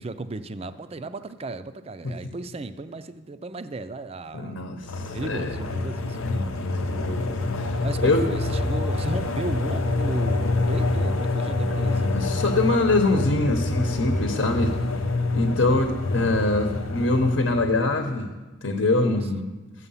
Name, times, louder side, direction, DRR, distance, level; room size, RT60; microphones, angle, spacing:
voice 1, 0.0-4.6 5.1-6.2 7.8-12.3 14.3-14.5 15.7-15.9 19.0-19.3, right 2 dB, 30° right, 11 dB, 0.4 m, -35 dB
voice 2, 4.3-5.6 6.2-8.3 11.7-14.8 15.3-18.3 18.6-19.5, left 2 dB, 65° left, 5 dB, 1.0 m, -24 dB
sound 1, 4.8-17.9, left 2 dB, 90° left, 0.8 m, -26 dB
13.0 x 8.1 x 5.6 m, 1.2 s
head